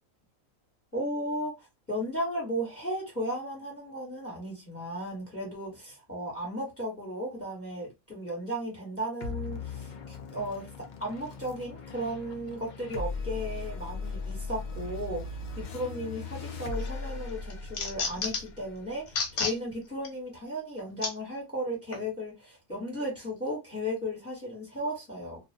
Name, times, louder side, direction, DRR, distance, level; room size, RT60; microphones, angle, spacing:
voice 1, 0.9-1.5 1.9-10.7 11.0-15.4 15.7-25.4, equal, 10° left, 1.1 m, -35 dB
sound 1, 9.2-20.0, left 4 dB, 75° left, 0.4 m, -39 dB
sound 2, 16.5-16.9 17.3-18.6 19.1-19.6 20.0-20.1 21.0-21.1 21.9-22.0, left 4 dB, 50° left, 0.8 m, -31 dB
2.4 x 2.3 x 2.5 m
omnidirectional pair, 1.4 m